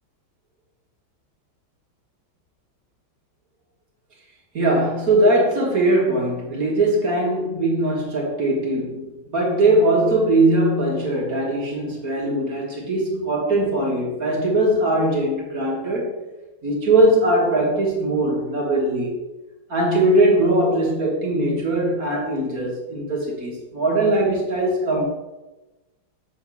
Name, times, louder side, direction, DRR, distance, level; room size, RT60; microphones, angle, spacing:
voice 1, 4.5-16.1 16.6-19.2 19.7-25.1, right 1 dB, 45° right, -2 dB, 1.7 m, -20 dB
6.9 x 3.6 x 6.1 m, 1.1 s
omnidirectional pair, 2.3 m